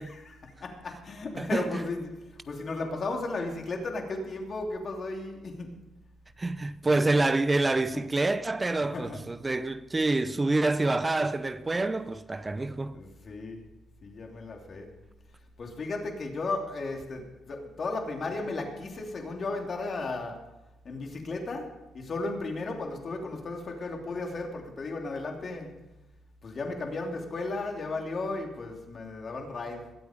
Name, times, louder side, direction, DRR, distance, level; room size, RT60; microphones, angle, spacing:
voice 1, 0.0-5.7 7.9-8.0 8.8-9.2 12.9-13.7 14.0-15.0 15.6-20.5 20.8-25.8 26.4-29.9, left 3 dB, 45° left, 2.9 m, -35 dB
voice 2, 1.4-1.8 6.4-13.0, right 2 dB, 20° right, 0.6 m, -27 dB
21.5 x 8.3 x 5.1 m
cardioid pair, 90°, 0 cm